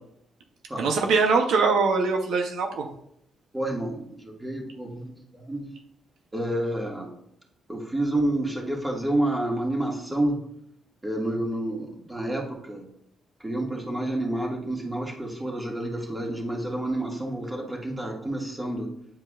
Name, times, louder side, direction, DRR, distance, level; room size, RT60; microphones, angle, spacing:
voice 1, 0.8-2.9, right 4 dB, 75° right, 3 dB, 0.8 m, -22 dB
voice 2, 3.5-5.7 6.3-7.1 7.7-10.5 11.0-12.9 13.4-18.9, right 1 dB, 10° right, -1 dB, 1.8 m, -29 dB
9.7 x 4.5 x 2.4 m, 0.73 s
cardioid pair, 90°, 0 cm